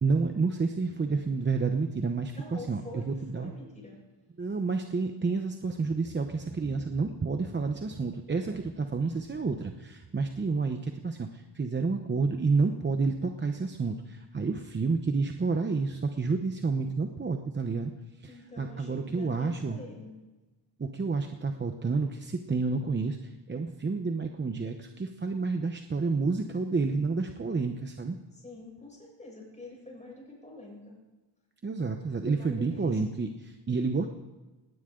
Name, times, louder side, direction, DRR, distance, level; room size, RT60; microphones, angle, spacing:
voice 1, 0.0-3.5 4.4-17.9 18.2-19.8 20.8-28.2 31.6-34.1, right 4 dB, 25° right, 5 dB, 0.9 m, -30 dB
voice 2, 2.4-4.0 18.3-20.2 28.3-31.0 32.3-33.0, left 2 dB, 15° left, -2 dB, 7.0 m, -46 dB
19.0 x 18.5 x 3.8 m, 1.2 s
wide cardioid pair, 145°, 45 cm